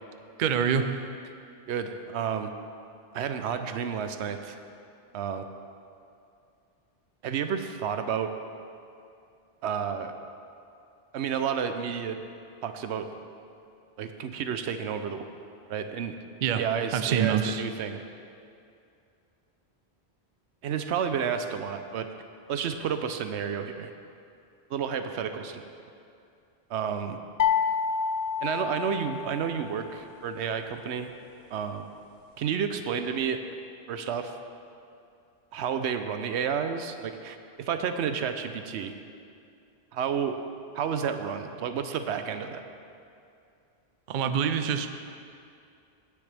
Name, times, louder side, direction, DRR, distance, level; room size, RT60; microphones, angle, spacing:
voice 1, 0.4-0.9 16.4-16.6 16.9-17.6 44.1-44.9, right 7 dB, 55° right, 9 dB, 0.6 m, -25 dB
voice 2, 1.7-2.5 3.1-4.6 5.1-5.5 7.2-8.3 9.6-10.1 11.1-12.2 12.6-13.1 14.0-15.3 15.7-16.1 16.6-18.0 20.6-22.1 22.5-23.9 24.7-25.6 26.7-27.2 28.4-31.1 31.5-31.9 32.4-33.4 33.9-34.3 35.5-38.9 39.9-40.4 40.7-42.6, right 7 dB, 85° right, 8 dB, 0.9 m, -31 dB
sound 1, 27.4-29.5, left 7 dB, 55° left, 0.5 m, -28 dB
17.0 x 6.6 x 3.4 m, 2.5 s
omnidirectional pair, 1.1 m